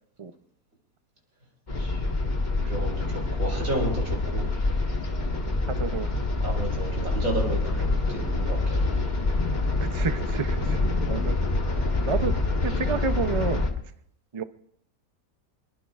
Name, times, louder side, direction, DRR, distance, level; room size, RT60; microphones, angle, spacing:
sound 1, 1.7-13.7, left 2 dB, 30° left, 1.7 m, -26 dB
voice 1, 2.7-4.5 6.4-9.0, right 1 dB, 65° right, 0 dB, 5.5 m, -32 dB
voice 2, 5.7-6.1 9.9-10.8 11.1-11.4 12.0-12.3 12.6-13.6 14.3-14.4, right 5 dB, 45° right, 9 dB, 0.4 m, -29 dB
26.0 x 21.5 x 2.4 m, 0.72 s
omnidirectional pair, 1.5 m